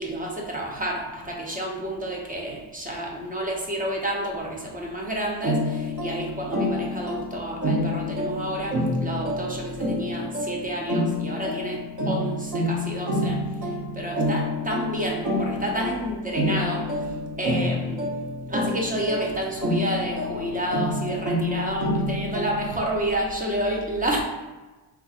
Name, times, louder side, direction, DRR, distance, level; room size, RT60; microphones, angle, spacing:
voice 1, 0.0-17.0 17.4-18.0 18.5-24.2, right 1 dB, 20° right, -1 dB, 0.6 m, -30 dB
sound 1, 5.4-22.9, left 1 dB, 45° right, 0.9 m, -28 dB
3.6 x 2.9 x 2.4 m, 1.2 s
wide cardioid pair, 125°, 42 cm